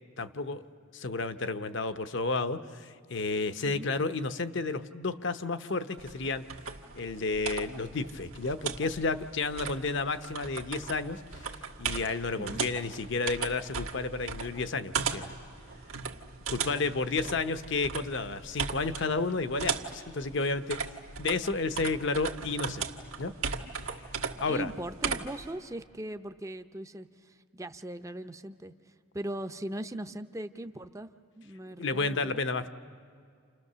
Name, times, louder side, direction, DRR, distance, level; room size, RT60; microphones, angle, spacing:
voice 1, 0.2-0.6 0.9-6.5 6.9-11.5 11.8-15.3 16.5-20.8 21.2-22.8 23.2-23.3 24.4-24.7 31.8-32.7, left 3 dB, 55° left, 10 dB, 0.9 m, -31 dB
sound 1, 6.0-25.5, right 6 dB, 85° right, 1.7 m, -38 dB
voice 2, 12.3-12.7 24.5-31.1 31.3-32.4, right 1 dB, 15° right, 8 dB, 0.6 m, -39 dB
29.5 x 28.5 x 6.8 m, 2.3 s
head